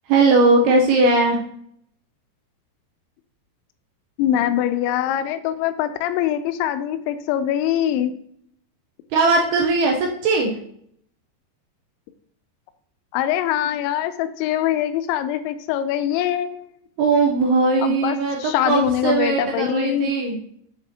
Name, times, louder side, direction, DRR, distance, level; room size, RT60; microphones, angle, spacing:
voice 1, 0.1-1.4 9.1-10.0 10.2-10.5 17.0-18.4 18.7-20.4, right 3 dB, 80° right, 0 dB, 2.3 m, -18 dB
voice 2, 4.2-8.1 13.1-16.7 17.8-20.1, left 11 dB, 85° left, 10 dB, 2.7 m, -23 dB
7.4 x 6.8 x 2.8 m, 0.67 s
omnidirectional pair, 5.5 m